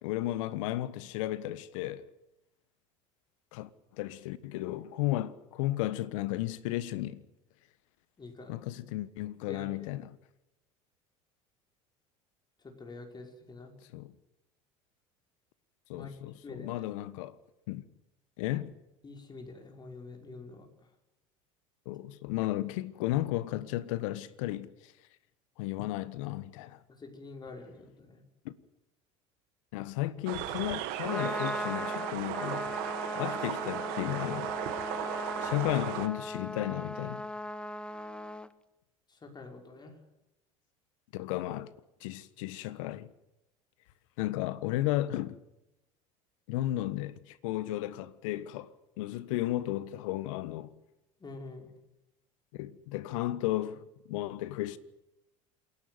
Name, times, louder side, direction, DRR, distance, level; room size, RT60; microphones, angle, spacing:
voice 1, 0.0-2.1 3.5-3.7 4.0-7.2 8.5-10.1 13.9-14.1 15.9-17.4 17.7-17.9 18.4-18.7 21.8-24.9 25.6-26.8 28.4-28.5 29.7-32.8 33.1-34.5 35.4-37.3 41.1-41.7 42.0-43.1 44.2-45.4 46.5-50.7 52.5-54.8, left 15 dB, 70° left, 1.4 m, -34 dB
voice 2, 8.2-8.6 9.5-9.7 12.6-13.7 15.9-16.1 16.4-16.9 19.0-20.7 27.0-28.2 39.1-40.0 51.2-51.7, left 3 dB, 25° left, 5.7 m, -46 dB
sound 1, 30.3-36.1, right 14 dB, 65° right, 2.0 m, -36 dB
Trumpet, 30.9-38.5, left 1 dB, 5° left, 1.3 m, -38 dB
27.5 x 11.5 x 9.6 m
hypercardioid pair, 75°, 17 cm